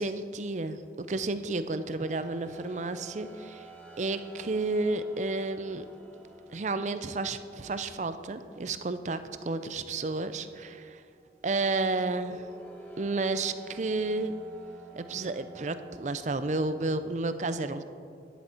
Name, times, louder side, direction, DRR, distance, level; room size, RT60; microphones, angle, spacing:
voice 1, 0.0-3.7 4.0-5.9 6.5-11.0 11.4-12.5 13.0-14.4 14.9-17.8, right 3 dB, 40° right, 11 dB, 0.5 m, -31 dB
sound 1, 1.2-17.1, right 3 dB, 10° left, 1.4 m, -52 dB
11.5 x 10.0 x 4.4 m, 2.3 s
head